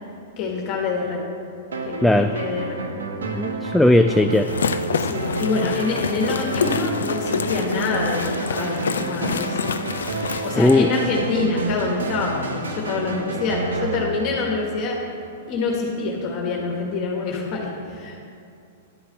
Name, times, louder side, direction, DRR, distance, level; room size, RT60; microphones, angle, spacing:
voice 1, 0.4-1.3 1.8-2.9 5.0-9.6 10.4-15.0 15.5-18.2, left 3 dB, 45° left, 0 dB, 1.5 m, -26 dB
sound 1, 1.7-15.3, right 3 dB, 80° right, 0.9 m, -30 dB
voice 2, 2.0-2.3 3.4-4.5 10.6-10.9, left 1 dB, 5° left, 7 dB, 0.3 m, -17 dB
sound 2, 4.3-10.8, left 6 dB, 75° left, 0.4 m, -28 dB
11.0 x 4.8 x 6.6 m, 2.5 s
hypercardioid pair, 110°, 0 cm